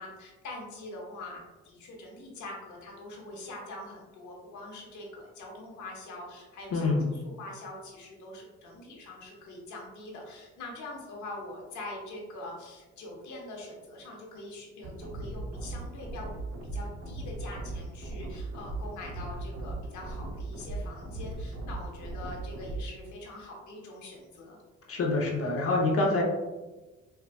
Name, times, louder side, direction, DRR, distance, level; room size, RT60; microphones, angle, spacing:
voice 1, 0.0-16.3 16.6-24.6, left 2 dB, 75° left, -1 dB, 1.1 m, -43 dB
voice 2, 6.7-7.0 24.9-26.2, left 2 dB, 50° left, -1 dB, 0.8 m, -26 dB
sound 1, 14.8-22.8, right 2 dB, 55° right, 0.7 m, -38 dB
4.5 x 2.4 x 2.2 m, 1.1 s
cardioid pair, 90°, 30 cm